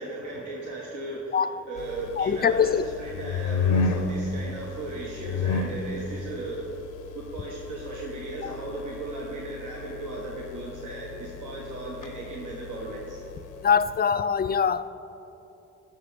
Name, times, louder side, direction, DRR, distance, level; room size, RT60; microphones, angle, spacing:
voice 1, 0.0-6.7 7.1-13.2, right 2 dB, 80° right, 1.4 m, -36 dB
sound 1, 1.8-14.0, left 4 dB, 85° left, 0.7 m, -33 dB
voice 2, 2.2-2.8 8.4-8.5 13.6-14.9, left 7 dB, 30° left, 0.4 m, -23 dB
12.0 x 6.0 x 5.1 m
cardioid pair, 65°, 30 cm